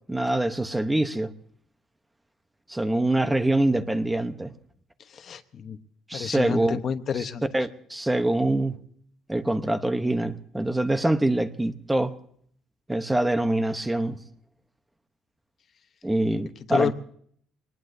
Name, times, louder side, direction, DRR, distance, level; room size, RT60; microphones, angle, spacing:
voice 1, 0.1-1.3 2.7-4.5 6.1-6.8 7.2-7.3 7.5-8.8 9.3-12.1 12.9-14.2 16.0-16.9, right 1 dB, 10° right, 0.9 m, -24 dB
voice 2, 5.1-5.8 6.1-7.4 16.7-16.9, left 7 dB, 45° left, 0.9 m, -29 dB
23.5 x 19.5 x 2.7 m
cardioid pair, 140°, 0 cm